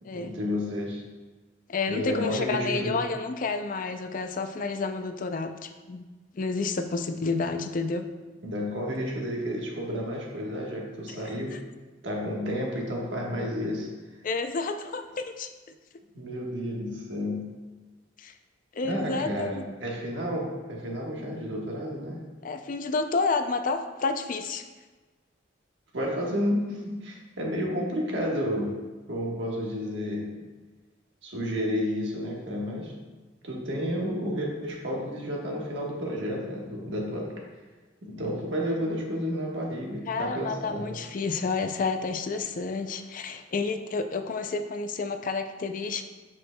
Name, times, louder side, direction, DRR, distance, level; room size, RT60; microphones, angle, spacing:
voice 1, 0.0-1.0 1.9-3.0 8.4-11.6 12.0-13.9 16.1-17.5 18.8-22.2 25.9-28.8 29.1-30.3 31.2-32.9 33.4-37.3 38.0-40.9, equal, 70° right, -2 dB, 1.3 m, -31 dB
voice 2, 1.7-6.0 6.3-8.0 11.1-11.2 11.5-11.6 14.2-15.5 18.2-18.3 18.7-19.6 22.4-24.6 40.1-46.0, left 4 dB, 45° left, 8 dB, 0.4 m, -30 dB
7.6 x 6.0 x 2.2 m, 1.3 s
head